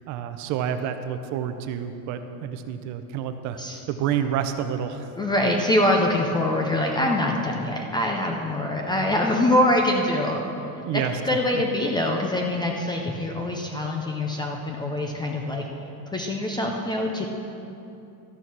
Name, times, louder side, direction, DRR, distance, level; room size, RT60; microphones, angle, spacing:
voice 1, 0.1-3.6 3.9-5.1 10.8-11.2 11.5-11.6, right 9 dB, 45° right, 8 dB, 0.6 m, -28 dB
voice 2, 5.2-10.4 10.9-15.6 16.1-17.2, left 1 dB, 10° left, 1 dB, 0.4 m, -24 dB
12.5 x 6.8 x 6.0 m, 2.8 s
cardioid pair, 165°, 39 cm